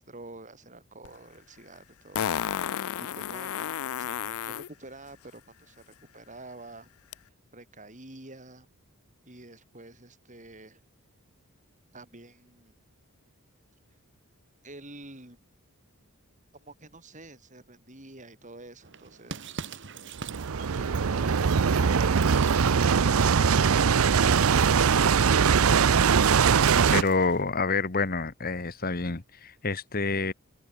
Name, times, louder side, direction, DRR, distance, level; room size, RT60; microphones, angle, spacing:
voice 1, 0.0-2.3 2.6-6.9 7.5-8.7 9.2-10.8 11.9-12.8 14.6-15.4 16.5-19.5 20.5-22.2, right 2 dB, 35° right, 5.2 m, -48 dB
Fart, 1.0-1.1 2.1-4.7 7.1-7.2, left 9 dB, 70° left, 0.4 m, -32 dB
sound 1, 18.8-27.5, right 5 dB, 55° right, 1.2 m, -43 dB
sound 2, 20.2-27.0, right 6 dB, 70° right, 0.6 m, -21 dB
voice 2, 26.9-30.3, left 4 dB, 40° left, 1.4 m, -28 dB
open air
head